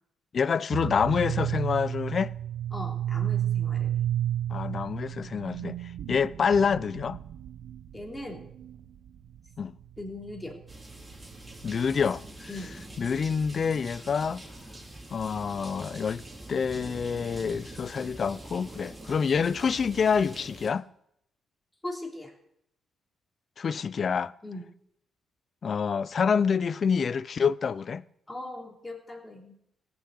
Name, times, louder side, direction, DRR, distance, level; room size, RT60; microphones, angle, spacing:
voice 1, 0.3-2.3 4.5-5.8 6.1-7.2 9.6-9.7 11.6-12.5 13.0-14.4 15.1-16.2 16.5-20.8 23.6-24.3 25.6-28.0, left 6 dB, 45° left, 0.5 m, -27 dB
sound 1, 0.7-12.0, right 11 dB, 75° right, 1.0 m, -32 dB
voice 2, 2.7-4.1 7.9-8.5 10.0-10.6 12.5-12.8 21.8-22.3 24.4-24.6 28.3-29.6, left 1 dB, 15° left, 3.4 m, -39 dB
sound 2, 10.7-20.7, right 1 dB, 15° right, 3.6 m, -44 dB
16.5 x 7.0 x 7.9 m
cardioid pair, 90°, 0 cm